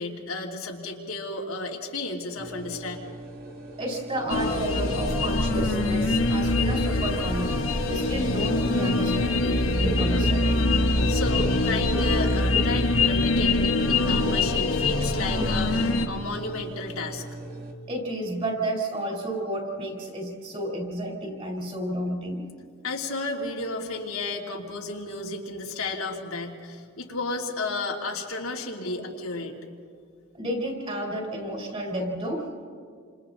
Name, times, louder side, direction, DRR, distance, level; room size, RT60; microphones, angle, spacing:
voice 1, 0.0-3.0 11.1-17.2 22.8-29.6, left 3 dB, 85° left, -1 dB, 3.0 m, -33 dB
sound 1, 2.4-17.7, right 1 dB, 45° right, 2.2 m, -38 dB
voice 2, 3.8-7.5 7.8-10.5 17.9-22.4 30.3-32.6, right 1 dB, 25° right, 1 dB, 4.2 m, -31 dB
sound 2, 4.3-16.1, left 2 dB, 65° left, 1.5 m, -24 dB
29.0 x 27.0 x 4.0 m, 2.1 s
head